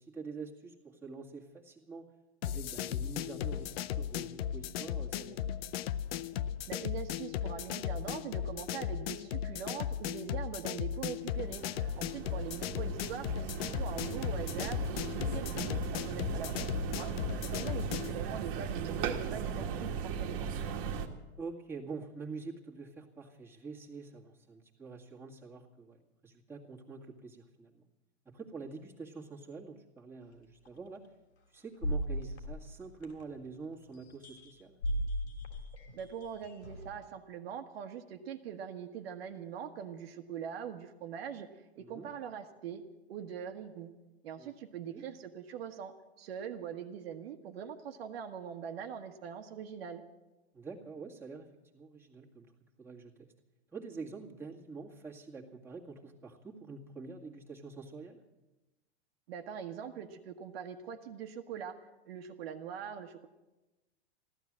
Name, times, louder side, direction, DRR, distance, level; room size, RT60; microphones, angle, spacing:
voice 1, 0.0-2.1 2.4-5.5 17.6-17.7 21.4-27.8 28.3-31.0 31.5-34.8 41.8-42.1 44.4-44.5 44.9-45.0 50.5-51.5 51.7-52.5 52.8-53.1 53.7-58.2, right 4 dB, 5° right, -3 dB, 2.0 m, -46 dB
sound 1, 2.4-18.2, left 10 dB, 65° left, 0.7 m, -36 dB
voice 2, 6.7-20.5 35.9-42.8 43.1-43.9 44.2-50.0 59.3-61.8 62.1-63.3, right 8 dB, 65° right, 5 dB, 1.4 m, -42 dB
sound 2, 11.2-21.1, right 7 dB, 45° right, 1.6 m, -38 dB
sound 3, 30.6-30.8 31.8-33.4 34.2-34.5 34.8-37.0, equal, 85° left, 3.4 m, -36 dB
15.5 x 12.0 x 7.5 m, 1.1 s
hypercardioid pair, 120°, 33 cm